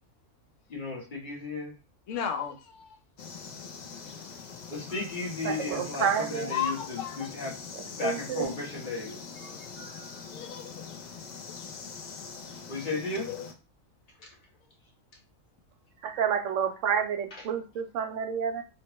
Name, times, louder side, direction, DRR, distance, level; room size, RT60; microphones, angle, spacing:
voice 1, 0.7-1.7 4.7-7.5 8.0-9.1 12.7-13.3, left 3 dB, 35° left, -4 dB, 1.3 m, -34 dB
voice 2, 2.1-3.0 6.5-7.3 9.0-9.2 9.5-9.6 10.3-11.0 13.3-13.5, left 8 dB, 65° left, 6 dB, 0.9 m, -34 dB
sound 1, 3.2-13.5, left 5 dB, 85° left, 0.4 m, -43 dB
voice 3, 5.4-6.5 7.8-8.5 9.8-10.1 16.0-18.6, right 7 dB, 70° right, 7 dB, 0.9 m, -30 dB
3.3 x 2.8 x 3.0 m, 0.31 s
omnidirectional pair, 1.4 m